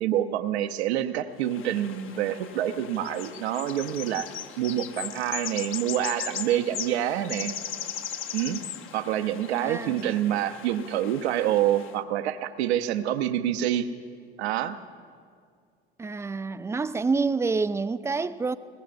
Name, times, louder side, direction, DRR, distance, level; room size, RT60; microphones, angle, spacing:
voice 1, 0.0-4.3 4.6-7.5 8.3-8.6 8.9-13.9 14.4-14.8, right 11 dB, 75° right, 0.8 m, -27 dB
sound 1, 1.4-12.0, left 9 dB, 40° left, 0.8 m, -38 dB
voice 2, 9.5-10.1 16.0-18.6, right 4 dB, 10° right, 0.3 m, -28 dB
21.5 x 19.5 x 2.6 m
hypercardioid pair, 70°, 33 cm